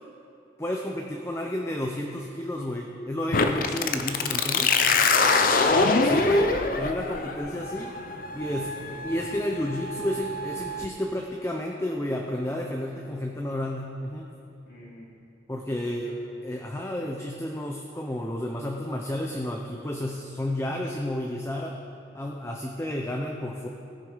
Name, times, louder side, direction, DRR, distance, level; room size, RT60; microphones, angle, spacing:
voice 1, 0.6-4.7 6.0-6.5 6.8-7.9 8.3-14.2 15.5-16.2 16.4-21.8 22.1-23.7, left 1 dB, 15° left, 1 dB, 0.7 m, -31 dB
sound 1, 3.3-10.8, left 4 dB, 50° left, 0.7 m, -25 dB
voice 2, 5.3-6.4 8.5-9.0 14.7-15.0 16.0-16.1 17.0-17.1, left 1 dB, 70° left, -6 dB, 3.0 m, -46 dB
19.0 x 6.8 x 5.0 m, 2.6 s
head